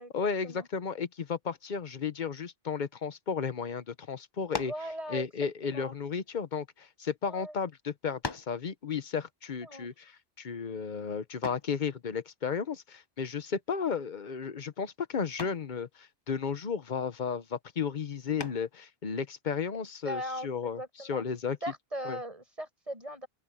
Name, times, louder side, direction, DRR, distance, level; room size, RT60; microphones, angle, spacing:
voice 1, 0.1-4.7 5.1-9.9 10.4-21.6 22.0-22.2, left 6 dB, 50° left, 1.0 m, -34 dB
sound 1, 4.5-4.9 5.8-7.0 7.7-7.8 8.2-8.6 11.4-11.8 13.7-14.1 14.4-14.8 15.4-15.7 18.4-18.8, left 3 dB, 25° left, 1.0 m, -40 dB
voice 2, 4.5-5.3 5.6-6.0 7.2-7.5 9.6-9.9 20.0-21.2 21.6-23.3, equal, 35° right, 6.8 m, -39 dB
open air
omnidirectional pair, 1.1 m